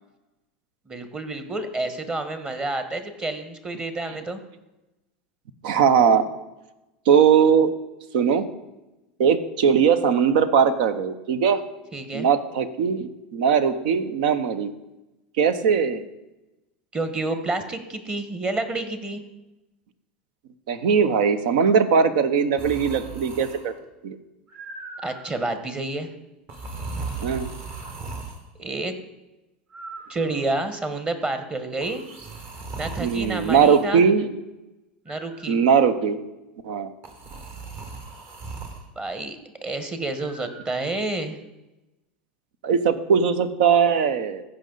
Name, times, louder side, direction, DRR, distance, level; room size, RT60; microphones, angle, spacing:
voice 1, 0.9-4.4 11.9-12.3 16.9-19.2 25.0-26.1 28.6-28.9 30.1-32.0 32.8-34.0 35.0-35.6 38.9-41.4, right 2 dB, 20° right, 9 dB, 1.2 m, -29 dB
voice 2, 5.6-6.2 7.1-7.7 8.1-8.5 9.2-11.6 12.1-14.7 15.4-16.0 20.7-23.7 24.0-24.2 27.2-27.5 33.0-34.3 35.5-36.2 36.6-36.9 42.6-44.4, right 6 dB, 70° right, 12 dB, 0.8 m, -20 dB
sound 1, 22.6-23.8 24.5-25.4 26.5-28.4 29.7-30.7 31.8-33.9 35.1-35.8 37.0-38.9 40.2-40.6, right 3 dB, 45° right, 1.7 m, -37 dB
15.0 x 5.4 x 3.9 m, 1.0 s
hypercardioid pair, 95°, 5 cm